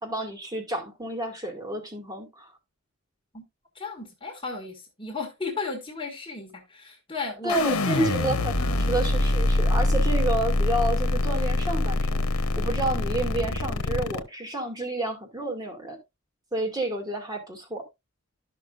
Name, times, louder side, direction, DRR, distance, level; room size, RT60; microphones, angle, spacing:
voice 1, 0.0-2.5 7.4-8.5 8.8-16.0 16.5-17.9, right 2 dB, 20° right, 2.2 m, -30 dB
voice 2, 3.7-8.2 8.6-8.9, left 4 dB, 25° left, 1.7 m, -35 dB
sound 1, 7.5-14.2, left 2 dB, 85° left, 1.0 m, -24 dB
13.0 x 6.0 x 2.5 m
head